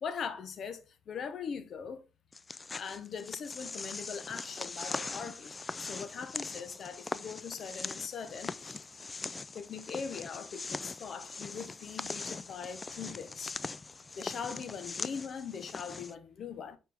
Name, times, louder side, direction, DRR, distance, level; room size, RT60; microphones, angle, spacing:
voice 1, 0.0-2.0 2.7-8.8 9.5-13.5 14.1-16.8, left 6 dB, 60° left, 0.9 m, -41 dB
sound 1, 2.3-16.1, left 4 dB, 30° left, 0.3 m, -41 dB
6.8 x 4.4 x 3.5 m
cardioid pair, 90°, 0 cm